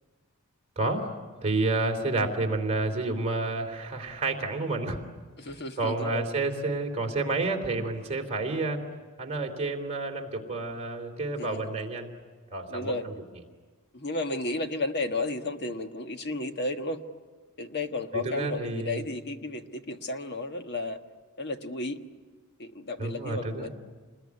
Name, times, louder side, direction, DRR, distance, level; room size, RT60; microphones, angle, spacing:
voice 1, 0.7-1.1 1.4-5.0 5.8-8.8 9.2-12.1 12.5-12.9 18.1-19.0 23.0-23.7, right 2 dB, 30° right, 2 dB, 3.3 m, -29 dB
voice 2, 5.4-6.2 11.4-11.7 12.7-13.1 13.9-17.0 17.6-21.0 21.4-22.0 22.6-23.7, left 2 dB, 50° left, 6 dB, 1.5 m, -33 dB
28.5 x 21.0 x 9.8 m, 1.4 s
head